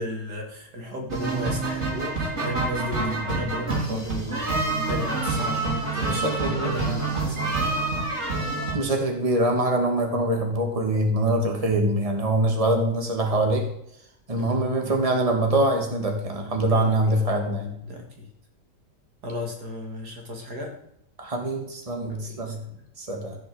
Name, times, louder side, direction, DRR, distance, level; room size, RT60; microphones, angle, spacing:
voice 1, 0.0-4.4 4.7-7.8 14.4-14.6 16.6-16.9 17.9-18.3 19.2-20.7 22.1-22.8, left 1 dB, 70° right, 2 dB, 2.9 m, -35 dB
sound 1, 1.1-8.7, right 3 dB, 40° right, 3.9 m, -27 dB
voice 2, 6.1-7.0 8.7-13.6 14.3-17.7 21.2-22.6 23.0-23.4, right 1 dB, 20° right, 2 dB, 2.4 m, -24 dB
15.0 x 6.7 x 8.1 m, 0.75 s
omnidirectional pair, 1.8 m